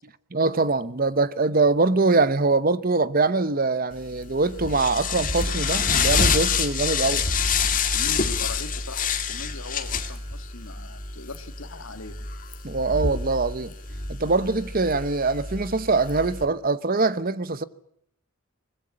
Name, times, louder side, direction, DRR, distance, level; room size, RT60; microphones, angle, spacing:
voice 1, 0.3-7.3 12.6-13.7 14.1-17.6, right 3 dB, 40° right, 0.9 m, -23 dB
sound 1, 4.0-16.5, left 5 dB, 40° left, 2.2 m, -27 dB
voice 2, 7.9-12.2, left 3 dB, 65° left, 2.2 m, -40 dB
23.5 x 20.5 x 8.6 m
head